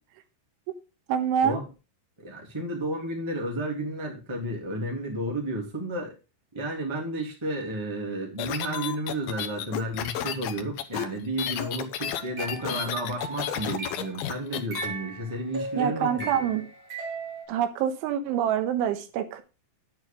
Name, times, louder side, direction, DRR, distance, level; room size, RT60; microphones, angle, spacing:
voice 1, 1.1-1.6 15.8-16.6 17.5-19.4, right 9 dB, 80° right, 3.5 m, -26 dB
voice 2, 2.2-6.1 6.5-16.5, right 1 dB, 10° right, 1.9 m, -32 dB
sound 1, 8.4-14.9, left 10 dB, 80° left, 2.1 m, -32 dB
sound 2, 12.0-14.2 14.7-17.4, right 3 dB, 30° right, 3.1 m, -38 dB
9.6 x 9.1 x 3.8 m
omnidirectional pair, 5.6 m